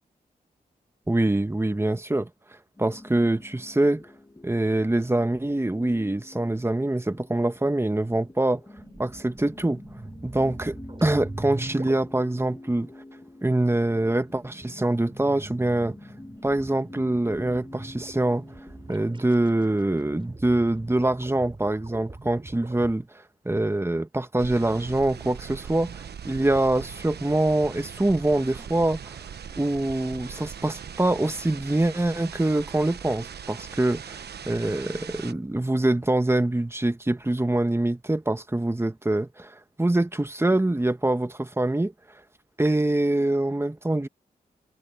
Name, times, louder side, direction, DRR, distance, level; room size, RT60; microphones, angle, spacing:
voice 1, 1.1-2.3 2.8-4.0 4.4-8.6 9.0-9.8 10.2-12.9 13.4-16.0 16.4-18.4 18.9-29.2 29.6-41.9 42.6-44.1, right 1 dB, 15° right, 1.6 m, -24 dB
sound 1, 2.8-20.6, left 1 dB, 20° left, 2.7 m, -47 dB
sound 2, 8.8-12.1 13.4-22.9, right 2 dB, 30° right, 3.9 m, -43 dB
sound 3, 24.4-35.3, right 7 dB, 75° right, 1.1 m, -40 dB
cardioid pair, 50°, 17 cm